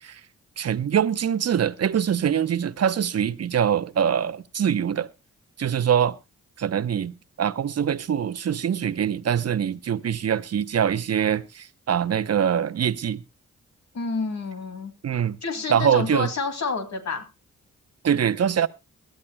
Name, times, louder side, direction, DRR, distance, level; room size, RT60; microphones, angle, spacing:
voice 1, 0.6-5.1 5.6-6.2 6.6-13.2 15.0-15.4 15.7-16.3 18.0-18.7, right 8 dB, 50° right, 0.9 m, -23 dB
voice 2, 13.9-17.2, left 3 dB, 60° left, 2.6 m, -29 dB
21.0 x 12.5 x 2.3 m
supercardioid pair, 45°, 31 cm